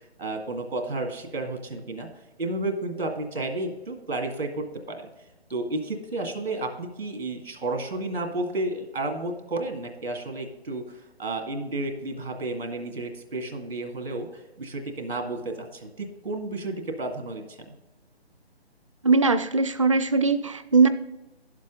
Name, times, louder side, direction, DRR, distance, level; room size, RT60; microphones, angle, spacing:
voice 1, 0.2-2.1 2.4-5.1 5.5-17.7, right 2 dB, 70° right, 4 dB, 2.0 m, -32 dB
voice 2, 19.0-20.9, right 4 dB, 30° right, 10 dB, 0.5 m, -20 dB
11.0 x 7.4 x 3.8 m, 1.0 s
figure-of-eight pair, 145°, 32 cm